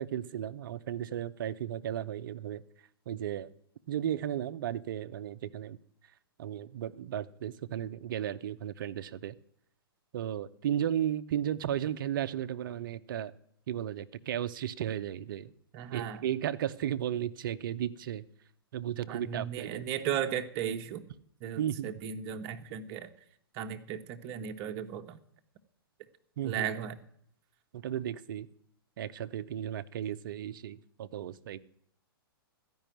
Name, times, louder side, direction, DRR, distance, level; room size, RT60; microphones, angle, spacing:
voice 1, 0.0-2.6 3.1-3.5 3.9-5.8 6.4-9.3 10.1-13.3 13.7-15.5 15.9-18.2 18.7-19.8 21.6-21.9 26.4-26.7 27.7-28.5 29.0-31.6, right 10 dB, 60° right, 12 dB, 0.7 m, -34 dB
voice 2, 15.7-16.3 19.1-21.0 21.4-23.1 23.5-25.2 26.4-27.0, right 9 dB, 40° right, 6 dB, 1.1 m, -36 dB
13.5 x 5.4 x 9.2 m, 0.68 s
hypercardioid pair, 115°, 13 cm